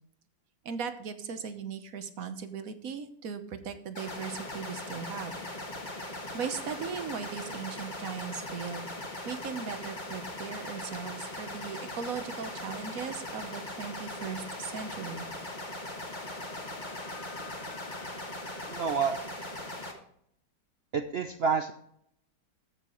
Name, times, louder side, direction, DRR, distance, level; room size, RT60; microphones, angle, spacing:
voice 1, 0.6-5.4 6.3-8.9 9.2-15.3, right 6 dB, 55° right, 9 dB, 1.2 m, -38 dB
sound 1, 3.9-19.9, left 1 dB, 25° left, 1.7 m, -40 dB
Wind instrument woodwind instrument, 14.6-19.0, left 7 dB, 70° left, 1.9 m, -52 dB
voice 2, 18.7-19.2 20.9-21.7, right 6 dB, 80° right, 6 dB, 0.5 m, -28 dB
14.5 x 6.5 x 3.1 m, 0.68 s
omnidirectional pair, 1.9 m